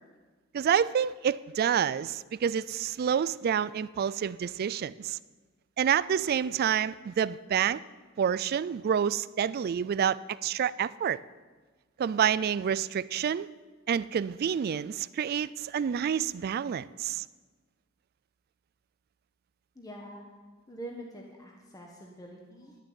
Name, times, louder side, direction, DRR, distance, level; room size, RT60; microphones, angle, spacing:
voice 1, 0.5-5.2 5.8-7.8 8.2-11.2 12.0-13.5 13.9-17.2, right 8 dB, 45° right, 0.3 m, -28 dB
voice 2, 19.7-20.2 20.7-22.8, right 1 dB, 15° left, 1.2 m, -44 dB
11.0 x 7.1 x 9.3 m
head